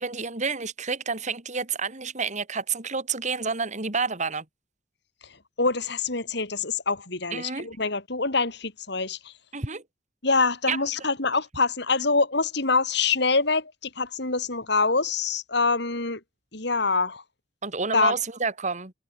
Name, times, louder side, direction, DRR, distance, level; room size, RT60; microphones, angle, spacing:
voice 1, 0.0-4.4 7.3-7.7 9.5-9.8 10.7-10.8 17.6-18.9, right 5 dB, 40° right, 2.9 m, -29 dB
voice 2, 5.6-9.3 10.2-16.2 16.5-17.2 17.9-18.1, left 4 dB, 65° left, 4.5 m, -25 dB
head